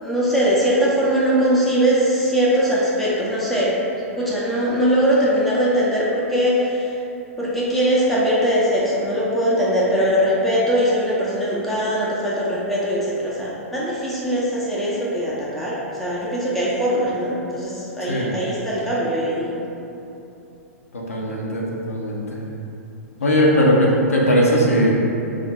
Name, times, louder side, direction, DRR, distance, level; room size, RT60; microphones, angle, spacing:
voice 1, 0.0-3.8 4.2-6.9 7.4-19.5, equal, ahead, -8 dB, 0.7 m, -21 dB
voice 2, 20.9-22.4 23.2-24.9, equal, 70° left, -3 dB, 0.7 m, -19 dB
3.5 x 2.5 x 4.2 m, 2.9 s
figure-of-eight pair, 105°, 8 cm